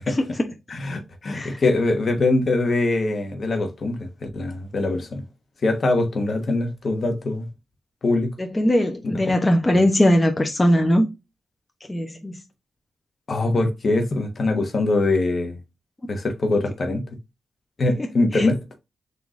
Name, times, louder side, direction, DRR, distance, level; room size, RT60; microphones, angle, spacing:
voice 1, 0.7-5.2 5.6-7.5 8.0-8.3 9.0-9.2 9.7-9.8 13.3-15.6 16.1-17.0 17.8-18.6, left 2 dB, 55° left, 1.2 m, -23 dB
voice 2, 8.4-11.1 11.9-12.3 18.3-18.5, equal, 25° left, 0.9 m, -20 dB
3.9 x 2.9 x 3.7 m
cardioid pair, 50°, 0 cm